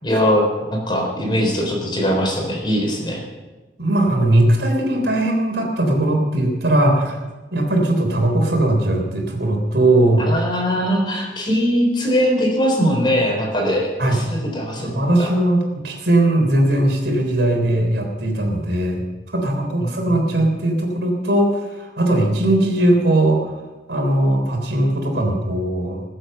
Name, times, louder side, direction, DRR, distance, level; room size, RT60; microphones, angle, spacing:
voice 1, 0.0-3.2 10.2-15.3 19.8-20.5, equal, 25° left, 0 dB, 3.8 m, -21 dB
voice 2, 3.8-7.2 7.5-10.3 14.0-14.2 14.8-19.0 19.3-23.5 23.9-26.0, right 1 dB, 70° right, 1 dB, 3.7 m, -19 dB
21.0 x 7.9 x 6.7 m, 1.2 s
head